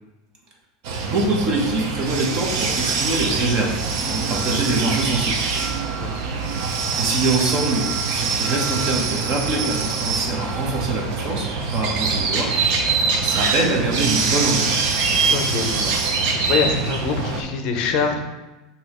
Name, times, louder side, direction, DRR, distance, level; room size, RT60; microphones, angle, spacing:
sound 1, 0.8-17.4, right 4 dB, 60° right, 0.6 m, -24 dB
voice 1, 1.0-5.4 6.9-12.7 13.2-14.8, right 2 dB, 35° right, 0 dB, 0.9 m, -24 dB
voice 2, 15.2-16.0 16.4-18.2, left 5 dB, 45° left, 4 dB, 0.5 m, -24 dB
6.1 x 2.7 x 3.0 m, 1.1 s
supercardioid pair, 160°, 2 cm